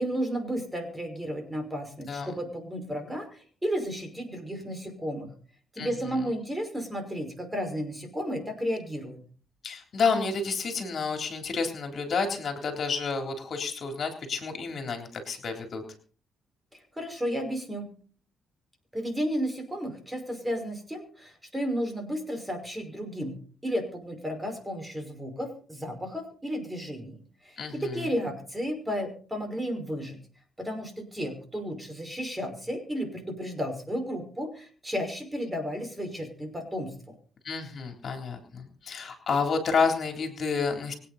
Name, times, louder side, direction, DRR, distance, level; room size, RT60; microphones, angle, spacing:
voice 1, 0.0-5.3 5.7-9.2 17.0-17.9 18.9-23.4 23.6-27.2 27.4-30.2 30.6-37.1, equal, 10° right, 5 dB, 5.6 m, -33 dB
voice 2, 5.8-6.2 9.6-15.8 27.6-28.1 37.4-40.9, left 5 dB, 50° left, 4 dB, 3.6 m, -30 dB
25.0 x 9.2 x 4.3 m, 0.42 s
cardioid pair, 90°, 0 cm